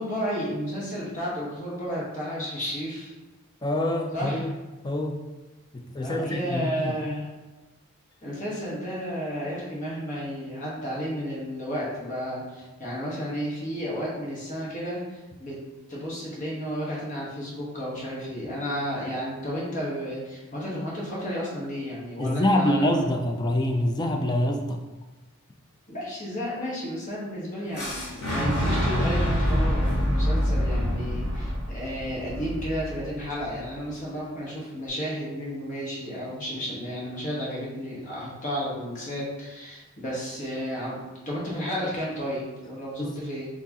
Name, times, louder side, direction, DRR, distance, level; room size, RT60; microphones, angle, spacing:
voice 1, 0.0-3.1 4.1-4.5 6.0-7.3 8.2-15.6 15.9-22.9 25.9-41.0 41.3-43.5, equal, 35° left, -5 dB, 1.1 m, -32 dB
voice 2, 3.6-4.5 4.8-5.2 5.7-7.0 22.2-24.8 42.9-43.2, left 1 dB, 20° left, 3 dB, 0.3 m, -25 dB
Fire / Explosion, 27.7-33.6, equal, 85° left, 1.2 m, -26 dB
4.6 x 2.9 x 2.8 m, 1.1 s
head